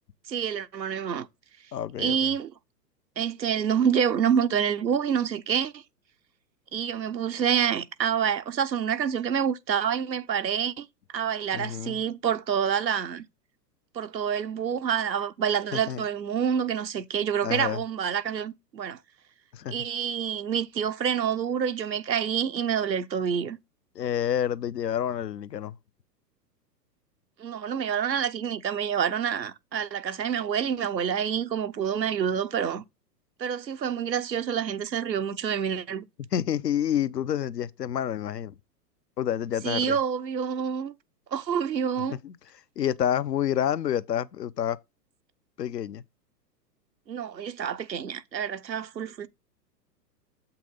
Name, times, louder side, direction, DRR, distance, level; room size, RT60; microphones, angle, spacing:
voice 1, 0.3-1.3 2.0-2.5 3.2-5.8 6.7-10.9 11.1-13.3 13.9-19.0 19.7-23.6 27.4-32.8 33.4-36.1 39.6-40.9 41.3-42.2 47.1-49.3, right 8 dB, 90° right, 0.8 m, -27 dB
voice 2, 1.7-2.3 11.5-12.0 15.7-16.1 17.4-17.8 19.5-19.7 23.9-25.7 36.2-38.5 39.2-40.0 42.1-42.3 42.8-44.8 45.6-46.0, left 10 dB, 75° left, 0.7 m, -28 dB
7.7 x 5.9 x 3.8 m
figure-of-eight pair, 110°, 49 cm